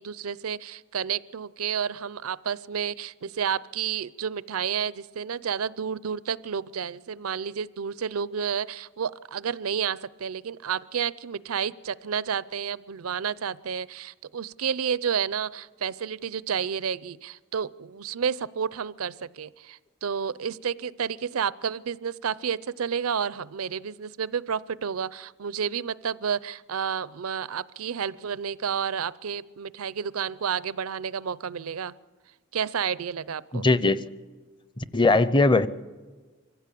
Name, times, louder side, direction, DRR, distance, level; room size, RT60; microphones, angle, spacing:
voice 1, 0.0-31.9 32.5-33.7, right 7 dB, 85° right, 19 dB, 0.6 m, -30 dB
voice 2, 33.5-34.0 34.8-35.7, left 2 dB, 20° left, 15 dB, 0.6 m, -20 dB
24.0 x 15.5 x 8.4 m, 1.4 s
head